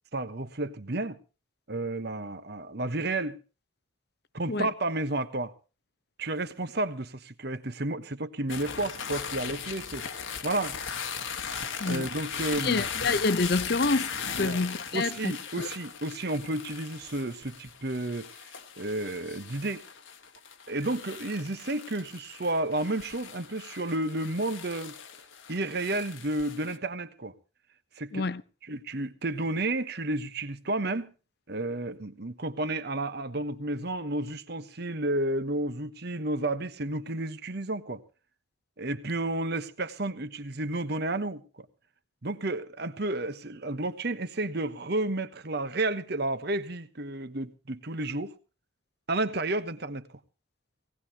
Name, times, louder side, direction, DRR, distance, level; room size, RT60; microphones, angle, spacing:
voice 1, 0.1-1.2 1.7-3.4 4.3-5.5 6.2-10.1 10.4-10.7 11.8-13.0 14.4-14.6 14.9-18.3 18.8-19.8 20.7-24.9 25.5-27.3 28.0-28.3 28.6-31.1 31.5-38.0 38.8-41.7 42.2-48.3 49.1-50.2, right 2 dB, 55° right, 1.1 m, -31 dB
sound 1, 8.5-26.8, left 6 dB, 75° left, 1.6 m, -38 dB
voice 2, 12.6-14.1 14.4-15.7 28.1-28.4, left 3 dB, 55° left, 0.7 m, -28 dB
18.0 x 18.0 x 2.9 m
head